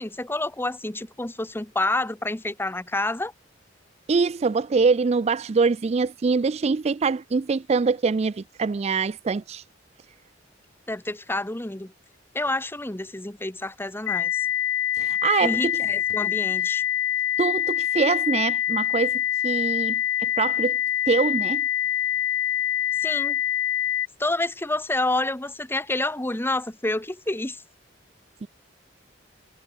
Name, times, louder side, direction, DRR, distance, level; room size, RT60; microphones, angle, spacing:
voice 1, 0.0-3.3 10.9-11.9 12.3-14.5 15.4-16.8 23.0-23.4 24.2-27.6, left 2 dB, 10° left, 0.9 m, -28 dB
voice 2, 4.1-9.6 15.0-15.8 17.4-20.8 21.1-21.6 28.4-28.5, right 4 dB, 35° right, 0.4 m, -24 dB
sound 1, 14.1-24.1, left 11 dB, 75° left, 0.4 m, -25 dB
head